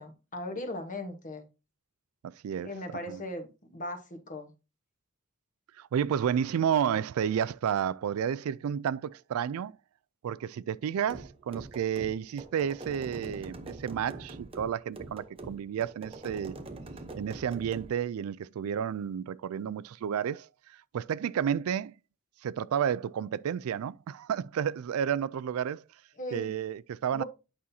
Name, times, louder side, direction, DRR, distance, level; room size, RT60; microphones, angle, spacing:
voice 1, 0.0-1.4 2.6-4.5 26.2-26.5 27.1-27.2, left 1 dB, 40° left, 1.2 m, -38 dB
voice 2, 2.2-2.7 3.1-3.2 5.8-9.8 10.2-16.6 17.2-21.9 22.4-25.8 26.3-27.2, right 8 dB, 80° right, 0.3 m, -31 dB
sound 1, 11.1-17.9, right 2 dB, 25° right, 0.8 m, -44 dB
8.7 x 5.5 x 2.7 m
head